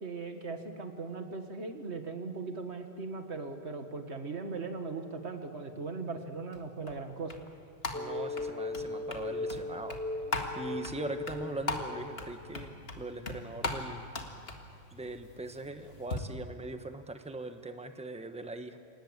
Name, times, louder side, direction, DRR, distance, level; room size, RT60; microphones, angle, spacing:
voice 1, 0.0-7.3, right 4 dB, 90° right, 6 dB, 2.0 m, -39 dB
sound 1, 6.5-16.2, left 2 dB, 65° left, 2.1 m, -40 dB
sound 2, 7.9-12.6, left 2 dB, 15° left, 0.5 m, -38 dB
voice 2, 7.9-10.0 10.5-14.1 14.9-18.8, right 2 dB, 5° right, 7 dB, 1.1 m, -41 dB
28.0 x 18.5 x 8.1 m, 2.6 s
omnidirectional pair, 1.1 m